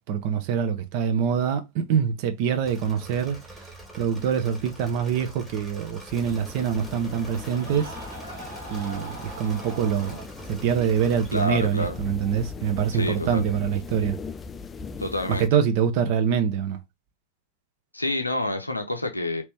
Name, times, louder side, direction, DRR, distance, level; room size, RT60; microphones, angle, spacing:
voice 1, 0.1-3.4 3.9-7.9 8.7-10.2 10.5-14.2 15.4-16.8, right 7 dB, 45° right, 0.7 m, -25 dB
Engine / Mechanisms, 2.6-11.4, right 1 dB, 5° right, 1.5 m, -45 dB
sound 1, 5.8-10.3, right 2 dB, 85° right, 1.1 m, -42 dB
sound 2, 6.1-15.5, left 5 dB, 20° left, 0.3 m, -40 dB
voice 2, 11.3-12.0 12.9-13.4 15.0-15.5 17.9-19.4, left 1 dB, 85° left, 0.6 m, -28 dB
3.1 x 3.0 x 3.3 m
figure-of-eight pair, 90°, 0 cm